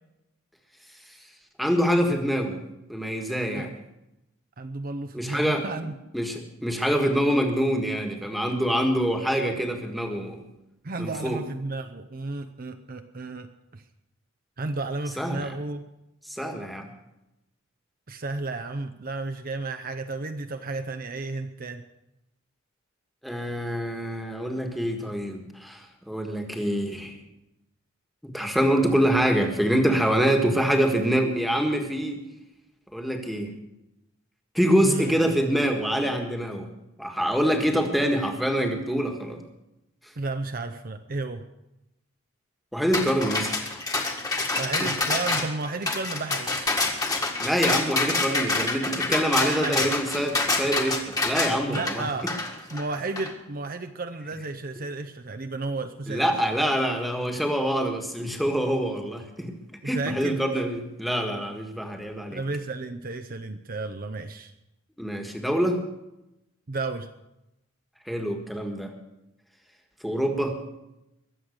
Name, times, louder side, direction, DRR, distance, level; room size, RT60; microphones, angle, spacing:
voice 1, 1.6-2.6 2.9-3.7 5.1-5.7 6.1-10.4 11.0-11.4 15.2-15.5 16.3-16.9 23.2-27.2 28.2-32.2 32.9-33.5 34.5-36.7 37.0-39.4 42.7-43.5 44.8-44.9 47.4-52.1 56.1-59.5 59.8-62.4 65.0-65.8 68.1-68.9 70.0-70.6, equal, ahead, 4 dB, 1.5 m, -25 dB
voice 2, 4.6-5.9 10.8-13.8 14.6-15.8 18.1-21.8 34.8-35.1 40.2-41.4 44.6-46.7 49.4-49.9 51.7-52.3 52.7-56.4 59.8-60.4 62.3-64.5 66.7-67.1, right 3 dB, 45° right, 7 dB, 0.7 m, -33 dB
sound 1, 42.9-53.3, left 3 dB, 15° left, 1.6 m, -27 dB
22.0 x 7.9 x 6.5 m, 0.92 s
head